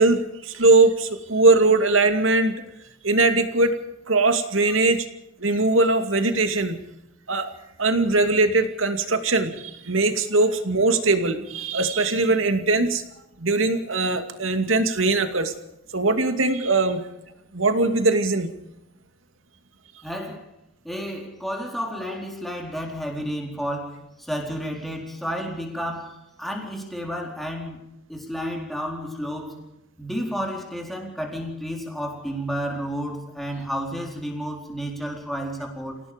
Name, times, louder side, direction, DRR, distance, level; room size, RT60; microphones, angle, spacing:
voice 1, 0.0-2.6 3.0-3.7 4.1-5.0 5.4-6.8 7.3-7.5 7.8-13.0 13.4-15.5 15.9-17.0 17.5-18.5, right 3 dB, 80° right, 7 dB, 2.5 m, -20 dB
voice 2, 20.0-20.5 20.8-29.6 30.0-36.0, equal, ahead, 0 dB, 4.3 m, -31 dB
28.0 x 18.0 x 5.2 m, 0.85 s
head